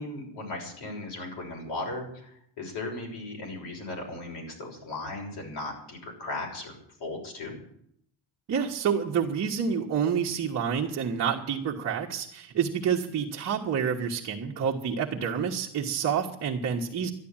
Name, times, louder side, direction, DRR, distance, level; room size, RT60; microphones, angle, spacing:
voice 1, 0.0-7.6, left 2 dB, 60° left, 1 dB, 6.3 m, -37 dB
voice 2, 8.5-17.1, right 7 dB, 35° right, -1 dB, 1.3 m, -28 dB
13.0 x 11.5 x 8.8 m, 0.70 s
cardioid pair, 180°, 46 cm